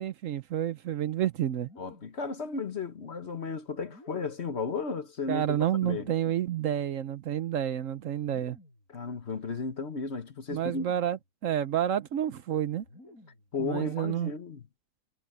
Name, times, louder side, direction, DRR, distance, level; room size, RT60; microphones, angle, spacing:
voice 1, 0.0-1.7 5.3-8.6 10.5-12.8 13.6-14.3, right 10 dB, 65° right, 1.0 m, -29 dB
sound 1, 1.6-2.3 3.8-4.5 5.9-6.6 8.2-8.9 10.5-11.3 12.8-13.5, left 1 dB, 70° left, 8.2 m, -54 dB
voice 2, 1.8-6.1 8.9-10.9 13.5-14.6, left 4 dB, 50° left, 1.4 m, -34 dB
omnidirectional pair, 1.6 m